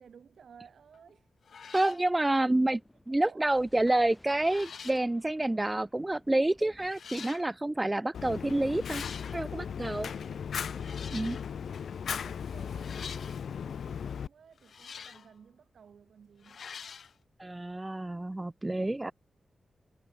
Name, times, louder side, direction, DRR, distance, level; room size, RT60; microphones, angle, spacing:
voice 1, 0.0-1.3 1.6-2.3 3.2-3.5 10.1-10.4 10.7-11.7 12.0-16.7 18.6-19.1, right 7 dB, 70° right, 5.6 m, -57 dB
sound 1, 0.9-1.1 1.4-2.1 3.7-4.0 4.4-5.1 6.1-6.2 6.9-7.5 8.7-9.4 10.7-11.5 12.8-13.5 14.6-15.3 16.4-17.1, left 6 dB, 60° left, 2.1 m, -46 dB
voice 2, 1.7-2.8 3.1-9.0 9.3-10.1 11.1-11.4 17.4-19.1, right 1 dB, 15° right, 0.6 m, -28 dB
Thunder, 2.5-13.4, left 1 dB, 10° left, 4.4 m, -62 dB
Fire, 8.1-14.3, left 7 dB, 80° left, 0.4 m, -37 dB
wide cardioid pair, 175°, 0 cm